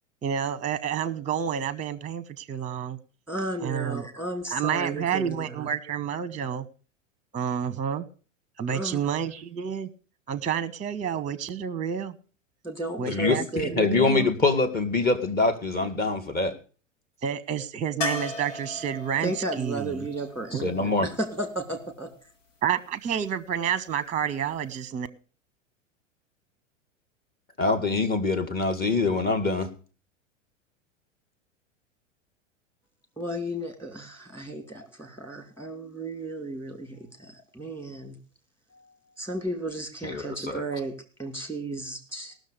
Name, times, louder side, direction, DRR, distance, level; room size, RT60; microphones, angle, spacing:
voice 1, 0.2-3.0 3.6-4.0 4.5-6.7 7.3-8.1 8.6-9.9 10.3-12.1 13.0-14.3 17.2-20.1 20.5-20.6 22.6-25.1, right 8 dB, 20° right, 17 dB, 1.0 m, -29 dB
voice 2, 3.3-5.7 8.7-9.0 12.6-13.7 19.2-22.1 33.2-38.2 38.7-38.8 39.2-40.9 41.2-42.3, right 2 dB, 5° left, 6 dB, 2.9 m, -34 dB
voice 3, 13.0-16.6 20.5-21.1 27.6-29.7 40.0-40.6, left 3 dB, 25° left, 7 dB, 2.2 m, -24 dB
sound 1, 18.0-21.9 24.5-24.6 24.9-25.0, left 2 dB, 75° left, 1.8 m, -36 dB
18.0 x 6.6 x 6.7 m, 0.38 s
hypercardioid pair, 95°, 38 cm